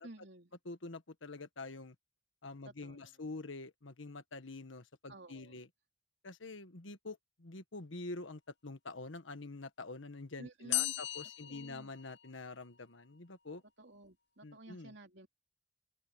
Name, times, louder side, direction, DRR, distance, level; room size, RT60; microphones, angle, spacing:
voice 1, 0.0-0.5 2.6-3.2 5.1-5.6 10.4-10.9 11.4-11.9 13.8-15.4, right 1 dB, 60° right, 3.5 m, -53 dB
voice 2, 0.6-1.9 2.4-5.7 6.2-13.6 14.4-14.9, left 3 dB, 80° left, 1.5 m, -46 dB
sound 1, 10.7-12.6, left 15 dB, 60° left, 0.6 m, -37 dB
head